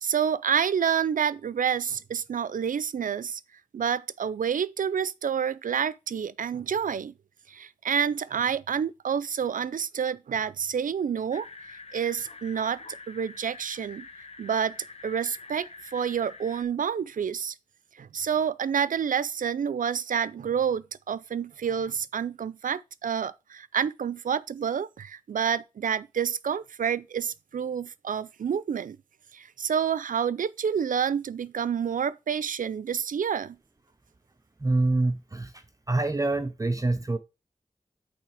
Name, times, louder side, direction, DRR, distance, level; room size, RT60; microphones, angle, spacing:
voice 1, 0.0-3.4 3.7-7.1 7.5-11.5 11.9-12.8 13.1-14.1 14.4-14.8 15.0-17.5 18.0-29.0 29.3-33.6, right 7 dB, 80° right, 0.4 m, -28 dB
sound 1, 11.3-16.6, left 4 dB, 50° left, 0.8 m, -46 dB
voice 2, 34.6-35.6 35.9-37.2, right 2 dB, 25° right, 0.6 m, -26 dB
8.6 x 3.2 x 4.8 m
wide cardioid pair, 65°, 14 cm